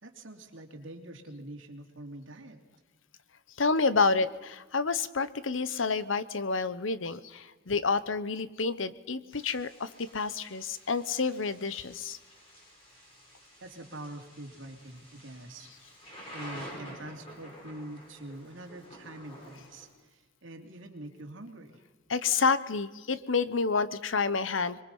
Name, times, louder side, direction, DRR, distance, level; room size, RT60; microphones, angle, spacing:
voice 1, 0.0-2.6 13.6-15.7 16.3-21.8, right 1 dB, 75° right, 3 dB, 2.9 m, -45 dB
voice 2, 3.6-12.2 22.1-24.8, left 4 dB, 80° left, 15 dB, 1.0 m, -29 dB
Thunder / Rain, 9.3-19.9, equal, 30° left, 7.1 m, -50 dB
25.0 x 22.5 x 5.6 m, 1.2 s
head